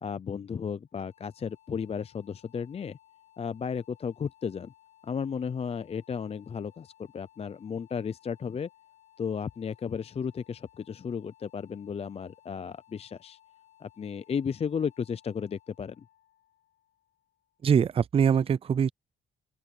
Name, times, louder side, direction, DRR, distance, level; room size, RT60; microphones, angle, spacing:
voice 1, 0.0-3.0 3.4-4.7 5.0-8.7 9.2-13.4 13.8-16.0, left 6 dB, 30° left, 0.5 m, -34 dB
sound 1, 0.9-17.8, left 12 dB, 75° left, 4.2 m, -61 dB
voice 2, 17.6-18.9, right 7 dB, 30° right, 0.4 m, -23 dB
open air
cardioid pair, 90°, 20 cm